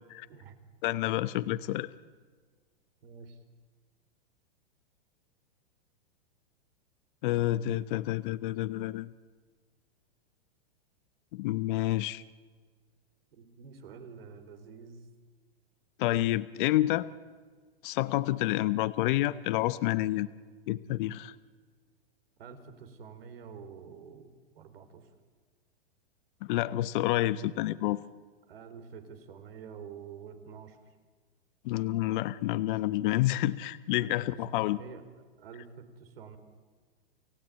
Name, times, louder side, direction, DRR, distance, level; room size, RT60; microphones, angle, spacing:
voice 1, 0.8-1.9 7.2-9.1 11.3-12.2 16.0-17.1 17.8-20.3 20.7-21.3 26.5-28.0 31.6-34.8, left 15 dB, 55° left, 15 dB, 1.0 m, -29 dB
voice 2, 3.0-3.4 13.3-15.1 22.4-25.1 28.5-30.8 34.0-34.1 34.5-35.0 35.4-36.4, right 6 dB, 70° right, 8 dB, 4.1 m, -48 dB
29.5 x 16.5 x 9.2 m, 1.5 s
hypercardioid pair, 125°, 30 cm